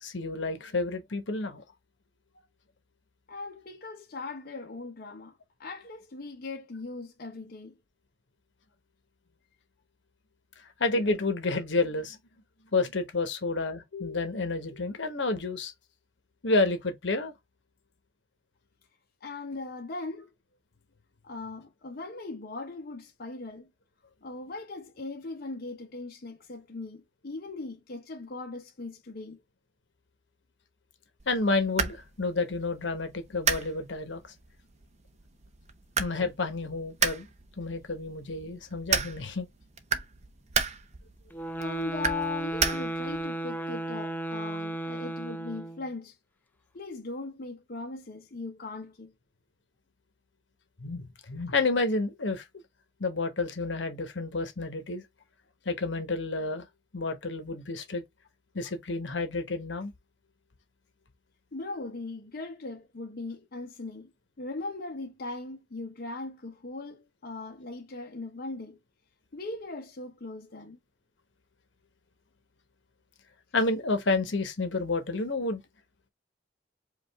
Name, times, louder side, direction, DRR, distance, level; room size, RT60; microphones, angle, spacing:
voice 1, 0.0-1.6 10.8-12.2 12.7-15.7 16.4-17.3 31.3-34.2 36.0-37.3 37.6-39.5 50.8-52.4 53.0-55.0 55.6-56.7 56.9-58.0 58.5-59.9 73.5-75.6, left 3 dB, 75° left, 1.0 m, -30 dB
voice 2, 3.3-7.8 19.2-20.3 21.2-23.7 24.2-29.4 41.6-46.2 46.7-49.1 61.5-64.1 64.4-68.8 69.3-70.8, left 3 dB, 55° left, 0.8 m, -39 dB
sound 1, 31.2-43.2, right 6 dB, 40° right, 0.7 m, -34 dB
sound 2, 41.3-45.9, right 1 dB, 10° left, 0.3 m, -34 dB
5.0 x 2.4 x 3.4 m
head